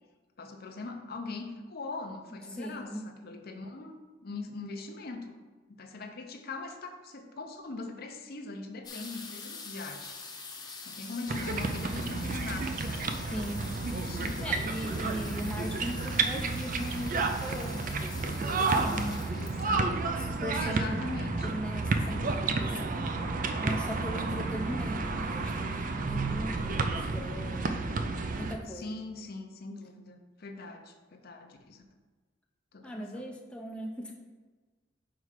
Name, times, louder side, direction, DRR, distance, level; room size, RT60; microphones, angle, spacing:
voice 1, 0.4-5.4 5.8-10.2 10.8-13.5 13.8-14.5 19.3-20.3 20.6-21.5 28.7-31.8 32.7-33.3, left 3 dB, 50° left, 5 dB, 0.6 m, -41 dB
voice 2, 2.5-3.1 13.3-13.8 14.4-19.2 20.4-21.0 21.4-23.1 23.6-27.8 28.3-29.0 32.8-34.1, equal, 5° left, 0 dB, 0.5 m, -39 dB
sound 1, 8.8-21.4 22.2-22.3 22.5-22.9 23.2-23.8 24.3-24.4 24.6-24.7, left 4 dB, 20° left, 0.9 m, -46 dB
sound 2, 11.3-28.6, right 3 dB, 45° right, 0.5 m, -31 dB
4.8 x 4.7 x 5.7 m, 1.3 s
head